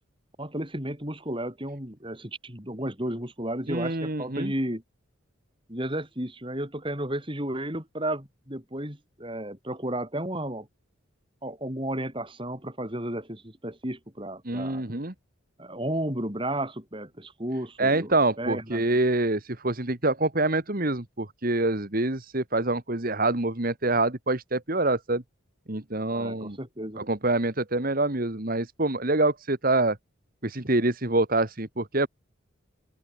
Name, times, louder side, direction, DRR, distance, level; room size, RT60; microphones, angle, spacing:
voice 1, 0.4-4.8 5.7-10.7 11.4-14.8 15.6-18.8 26.1-27.0, right 1 dB, 25° right, 6.6 m, -33 dB
voice 2, 3.7-4.5 14.5-15.1 17.8-25.2 25.7-26.6 27.0-30.0 30.4-32.1, right 2 dB, 45° right, 1.9 m, -26 dB
head